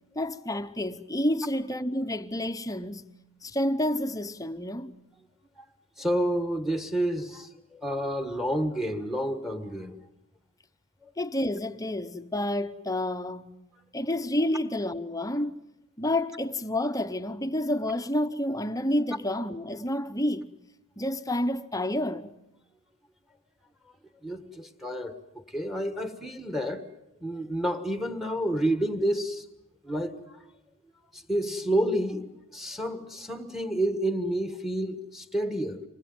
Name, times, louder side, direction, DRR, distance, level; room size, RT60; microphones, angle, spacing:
voice 1, 0.2-3.0 3.4-4.9 11.2-13.6 13.9-15.6 16.0-20.5 21.0-22.3, left 1 dB, 15° left, 0.9 m, -29 dB
voice 2, 6.0-10.0 11.0-11.1 24.2-25.1 25.5-26.9 27.2-29.4 29.8-30.4 31.1-35.8, right 1 dB, ahead, 1.5 m, -29 dB
26.5 x 20.5 x 9.5 m
head